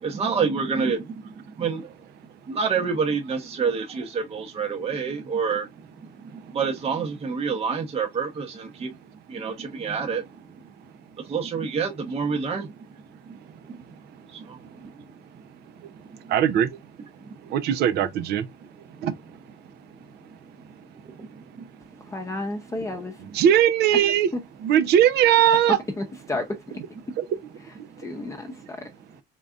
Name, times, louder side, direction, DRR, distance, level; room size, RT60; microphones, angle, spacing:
voice 1, 0.0-1.9 2.5-5.7 6.3-8.9 9.3-10.2 11.2-12.7 14.3-14.9 21.0-21.3 21.5-21.7, right 5 dB, 35° right, 0.8 m, -28 dB
voice 2, 16.3-16.7 17.5-18.4 19.0-19.1 23.3-24.3 24.6-25.8, right 10 dB, 75° right, 0.6 m, -19 dB
voice 3, 22.1-23.1 26.0-26.5 28.0-28.8, left 2 dB, 15° left, 0.7 m, -31 dB
4.0 x 3.7 x 2.4 m
cardioid pair, 110°, 17 cm